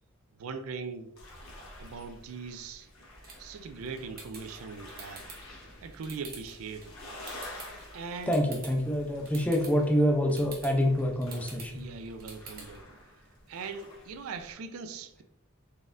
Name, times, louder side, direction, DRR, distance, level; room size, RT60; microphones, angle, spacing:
voice 1, 0.4-1.1 1.8-2.9 3.4-5.3 5.8-6.9 7.9-8.4 11.7-12.9 13.5-15.2, right 4 dB, 85° right, 0.4 m, -40 dB
sound 1, 1.2-14.5, left 1 dB, 85° left, 1.2 m, -50 dB
sound 2, 3.1-12.8, right 3 dB, 45° right, 0.9 m, -49 dB
voice 2, 8.3-11.7, equal, 5° left, 0.5 m, -26 dB
4.1 x 3.5 x 2.5 m
head